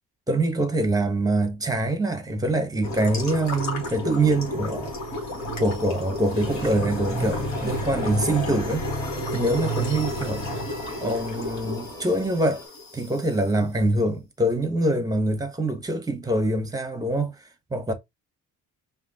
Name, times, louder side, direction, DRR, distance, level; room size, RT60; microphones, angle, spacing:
voice 1, 0.3-4.9 5.6-8.9 9.3-10.5 11.0-12.6 12.9-17.3 17.7-17.9, right 1 dB, 10° right, 1.0 m, -24 dB
sound 1, 2.8-13.3, left 1 dB, 60° left, 1.9 m, -31 dB
sound 2, 7.5-12.7, right 1 dB, 10° left, 1.5 m, -43 dB
5.0 x 2.7 x 2.9 m
cardioid pair, 120°, 32 cm